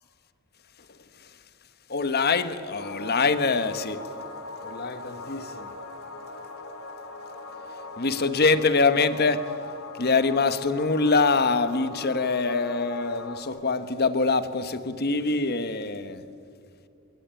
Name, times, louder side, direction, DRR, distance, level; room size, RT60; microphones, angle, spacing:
voice 1, 1.9-4.0 4.6-5.7 8.0-9.5 10.0-16.2, left 4 dB, 45° left, 1.2 m, -24 dB
sound 1, 2.8-13.4, left 3 dB, 60° left, 3.1 m, -40 dB
24.5 x 23.0 x 9.1 m
head